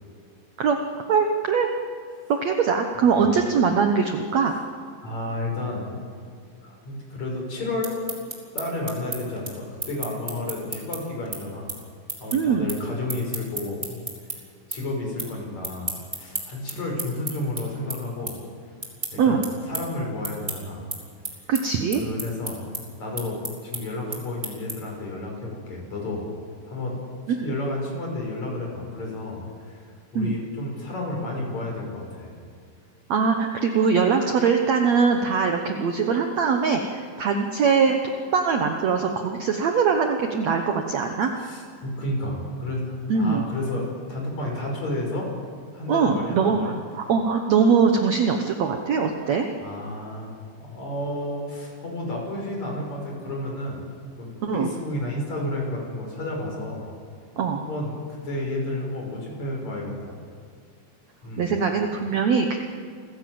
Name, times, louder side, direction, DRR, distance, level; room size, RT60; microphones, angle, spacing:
voice 1, 1.1-1.7 2.3-4.6 12.3-12.7 19.2-19.4 21.5-22.0 27.3-27.5 30.2-30.4 33.1-38.0 38.3-41.3 43.1-43.4 45.9-49.5 54.4-54.7 57.4-57.6 61.4-62.6, right 5 dB, 65° right, 4 dB, 1.8 m, -22 dB
voice 2, 5.0-5.9 6.6-7.9 8.5-11.7 12.2-14.0 14.7-18.3 19.1-20.9 22.0-22.6 23.0-26.3 26.7-27.0 27.4-32.4 41.4-45.3 45.7-46.8 49.6-53.8 54.2-56.8 57.6-58.0 58.2-60.2 61.2-61.5, left 1 dB, 45° left, -1 dB, 6.7 m, -31 dB
sound 1, 7.8-14.4 14.7-15.3 15.6-25.0, right 2 dB, 15° right, 2.8 m, -34 dB
28.0 x 16.0 x 7.8 m, 2.1 s
omnidirectional pair, 4.4 m